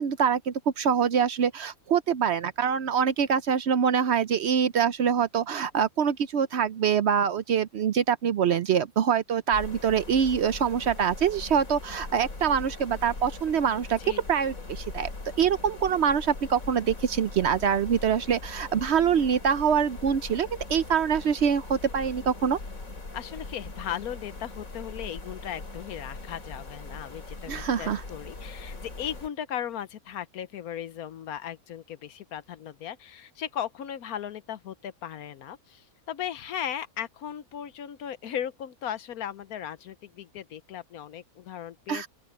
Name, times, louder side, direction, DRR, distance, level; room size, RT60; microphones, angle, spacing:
voice 1, 0.0-14.0 14.3-15.1 15.4-22.6 27.5-28.0 41.9-42.1, right 7 dB, 60° right, 0.8 m, -25 dB
sound 1, 9.5-29.3, left 3 dB, 70° left, 4.1 m, -41 dB
voice 2, 23.1-42.1, left 10 dB, 85° left, 1.3 m, -37 dB
open air
omnidirectional pair, 1.5 m